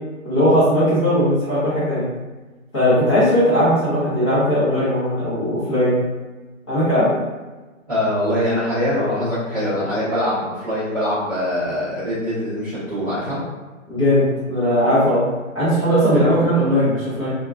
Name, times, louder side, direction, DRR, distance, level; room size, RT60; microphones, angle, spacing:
voice 1, 0.2-2.0 2.7-6.0 6.7-7.1 13.9-15.2 15.5-17.3, equal, 20° left, -14 dB, 0.8 m, -18 dB
voice 2, 7.9-13.4, left 1 dB, 15° right, -16 dB, 0.8 m, -23 dB
2.8 x 2.3 x 2.2 m, 1.2 s
hypercardioid pair, 170°, 40 cm